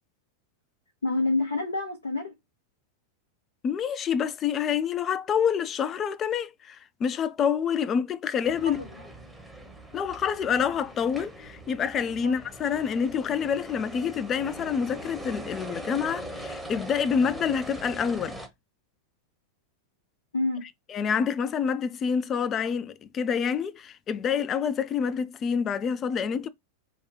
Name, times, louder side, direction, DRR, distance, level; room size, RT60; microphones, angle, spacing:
voice 1, 1.0-2.3 8.6-8.9 10.5-10.6 12.2-12.3 20.3-20.6, left 2 dB, 70° left, 0.8 m, -28 dB
voice 2, 3.6-8.8 9.9-18.4 20.9-26.5, left 7 dB, 25° left, 0.3 m, -27 dB
sound 1, 8.4-18.5, right 1 dB, ahead, 0.9 m, -41 dB
3.6 x 2.2 x 3.1 m
figure-of-eight pair, 90°, 0 cm